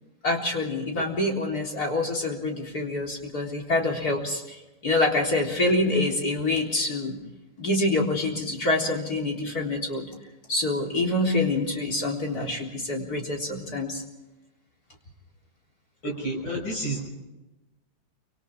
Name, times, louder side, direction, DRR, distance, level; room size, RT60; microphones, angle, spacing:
voice 1, 0.2-7.2 7.6-10.1 10.5-14.0, left 2 dB, 50° left, -1 dB, 4.3 m, -26 dB
voice 2, 16.0-17.1, right 1 dB, 80° left, 1 dB, 6.9 m, -30 dB
29.0 x 26.0 x 3.7 m, 1.0 s
omnidirectional pair, 2.1 m